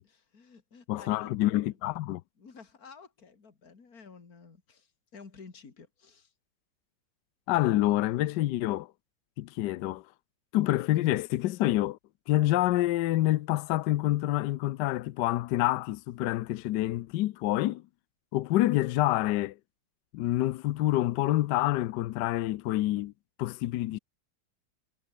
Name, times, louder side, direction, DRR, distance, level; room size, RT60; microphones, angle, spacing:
voice 1, 0.0-1.8 2.4-6.3, left 5 dB, 50° left, 3.2 m, -52 dB
voice 2, 0.9-2.2 7.5-8.9 9.4-10.0 10.5-12.0 12.3-17.8 18.3-19.5 20.1-23.1 23.4-24.0, left 16 dB, 75° left, 1.2 m, -27 dB
omnidirectional pair, 2.0 m